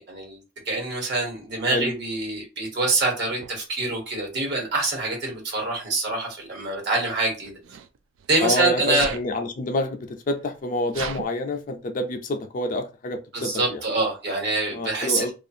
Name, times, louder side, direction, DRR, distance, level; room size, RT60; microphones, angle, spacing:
voice 1, 0.1-7.6 8.3-9.2 13.3-15.3, right 2 dB, 60° right, 1.2 m, -25 dB
Sneeze, 3.4-3.5 4.6-5.0 7.1-8.5 8.9-9.3 10.0-10.1 10.3-11.3, right 7 dB, 85° right, 0.3 m, -36 dB
voice 2, 8.4-13.8 14.7-15.3, left 1 dB, 45° left, 0.4 m, -28 dB
2.4 x 2.3 x 2.7 m
head